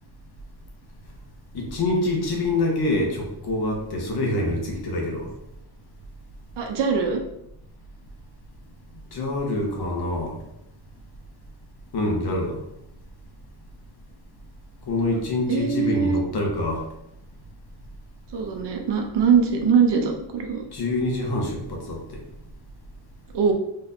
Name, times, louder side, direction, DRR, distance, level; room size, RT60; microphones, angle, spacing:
voice 1, 1.5-5.3 9.1-10.4 11.9-12.6 14.9-16.9 20.7-22.2, left 2 dB, 65° left, 0 dB, 1.1 m, -26 dB
voice 2, 6.6-7.2 15.5-16.2 18.3-20.6 23.3-23.5, right 6 dB, 80° right, 3 dB, 0.8 m, -22 dB
4.2 x 3.2 x 2.7 m, 0.79 s
wide cardioid pair, 165°, 41 cm